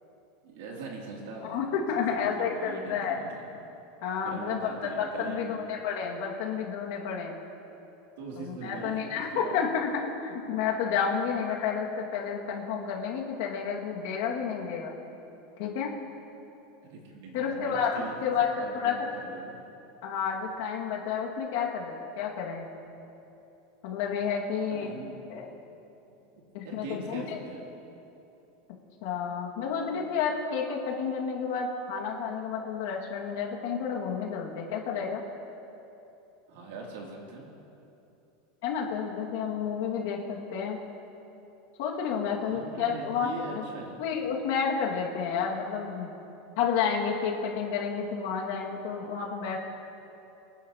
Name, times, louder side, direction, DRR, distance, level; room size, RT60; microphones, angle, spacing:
voice 1, 0.4-1.6 1.9-3.4 4.2-5.6 8.2-9.8 16.8-19.6 24.7-25.1 26.6-27.6 36.5-37.5 42.4-44.0, right 3 dB, 70° right, -1 dB, 2.7 m, -41 dB
voice 2, 1.4-3.2 4.0-7.4 8.4-9.9 10.2-14.9 15.6-15.9 17.3-19.1 20.0-22.7 23.8-24.9 25.3-25.5 26.5-27.4 29.0-35.2 38.6-40.8 41.8-43.6 44.0-46.1 46.6-49.6, left 6 dB, 60° left, -1 dB, 1.9 m, -30 dB
24.5 x 10.5 x 2.9 m, 2.9 s
supercardioid pair, 170°, 0 cm